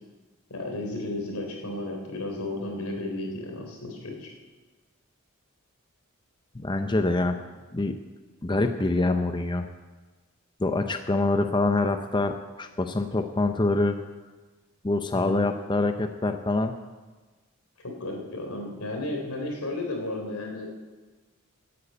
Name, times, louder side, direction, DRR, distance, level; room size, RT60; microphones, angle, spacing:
voice 1, 0.5-4.3 15.1-15.4 17.8-20.7, left 2 dB, 90° left, 2 dB, 3.4 m, -33 dB
voice 2, 6.5-7.4 7.7-8.0 8.4-9.7 10.6-14.0 14.8-16.7, left 2 dB, 20° left, 7 dB, 0.5 m, -25 dB
12.0 x 8.5 x 8.7 m, 1.3 s
head